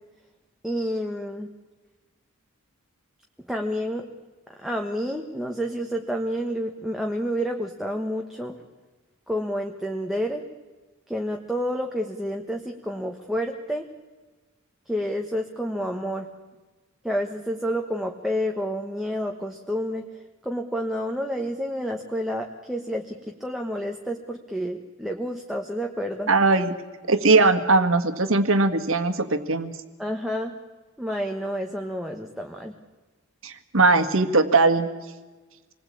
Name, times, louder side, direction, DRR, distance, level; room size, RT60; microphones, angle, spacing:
voice 1, 0.6-1.5 3.5-4.0 4.6-8.5 9.3-10.4 11.1-13.9 14.9-16.3 17.0-20.1 20.4-26.3 30.0-30.5 31.0-32.7, equal, ahead, 2 dB, 1.4 m, -29 dB
voice 2, 26.3-26.7 27.1-29.7 33.4-34.9, right 3 dB, 70° right, 9 dB, 1.9 m, -20 dB
27.0 x 20.0 x 8.6 m, 1.3 s
head